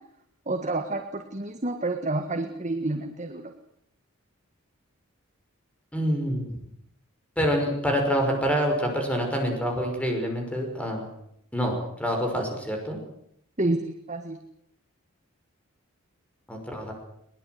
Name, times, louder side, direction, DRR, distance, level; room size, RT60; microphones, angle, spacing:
voice 1, 0.5-3.5 13.6-14.4, right 2 dB, 35° right, 5 dB, 1.7 m, -29 dB
voice 2, 5.9-6.5 7.4-11.1 11.5-11.7 12.0-13.0 16.5-16.9, equal, 5° left, 2 dB, 5.7 m, -26 dB
22.5 x 21.0 x 8.0 m, 0.72 s
head